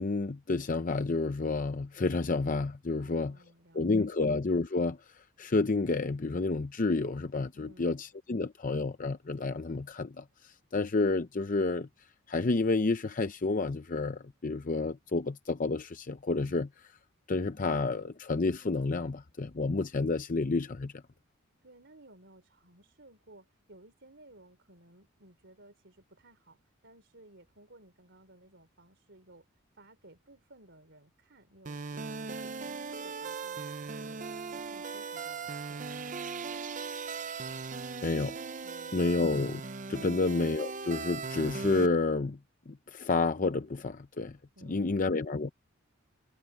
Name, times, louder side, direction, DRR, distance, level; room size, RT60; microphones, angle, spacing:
voice 1, 0.0-3.4 3.7-11.9 12.3-16.9 17.3-20.9 38.0-38.4 38.9-39.6 39.9-42.4 42.7-44.4 44.6-45.5, left 3 dB, 40° left, 0.6 m, -30 dB
voice 2, 3.0-4.2 7.5-7.9 21.6-29.4 29.7-34.2 34.5-36.2 38.6-39.2 40.0-40.2 44.6-45.1, right 1 dB, 60° right, 4.0 m, -57 dB
sound 1, 31.7-41.9, right 4 dB, 40° right, 0.7 m, -39 dB
head